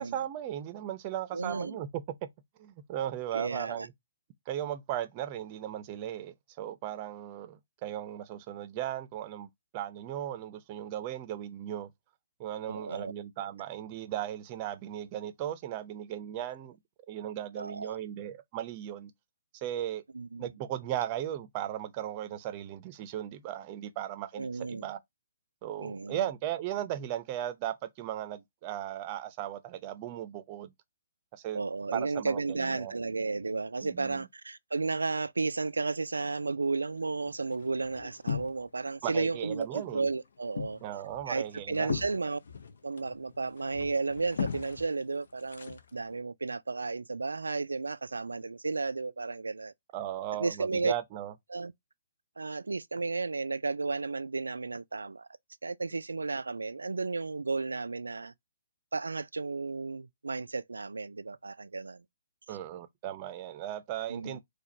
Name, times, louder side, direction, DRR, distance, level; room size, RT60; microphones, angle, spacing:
voice 1, 0.0-2.0 2.6-3.9 4.5-9.5 9.7-11.9 12.4-16.8 17.1-19.1 19.6-20.0 20.4-25.0 25.6-30.7 31.3-31.6 31.9-32.9 33.8-34.3 39.0-40.1 40.8-42.0 49.9-51.3 62.5-64.4, right 11 dB, 30° right, 0.7 m, -37 dB
voice 2, 1.3-1.8 3.3-3.9 12.7-13.1 16.4-16.5 17.6-18.0 20.1-20.5 24.3-24.9 25.8-26.2 31.5-40.8 41.3-42.4 42.8-49.7 50.4-50.9 51.5-51.7 52.4-55.3 55.6-58.3 58.9-62.0 62.5-62.6 64.1-64.4, right 3 dB, 75° right, 0.4 m, -33 dB
sound 1, 36.9-38.9 39.2-39.9 40.2-46.2, left 6 dB, 60° left, 0.7 m, -39 dB
4.6 x 2.4 x 4.4 m
figure-of-eight pair, 130°, 0 cm